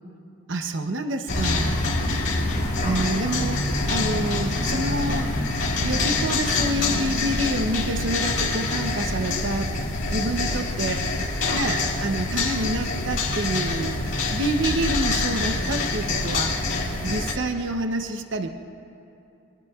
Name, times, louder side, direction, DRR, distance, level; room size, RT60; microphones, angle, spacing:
voice 1, 0.5-1.8 2.8-5.3 5.7-9.7 10.1-11.0 11.5-14.0 14.3-16.6 17.0-18.5, right 1 dB, 75° right, 6 dB, 0.8 m, -28 dB
sound 1, 1.3-17.3, left 2 dB, 70° left, 2.1 m, -25 dB
23.5 x 23.0 x 2.4 m, 2.8 s
head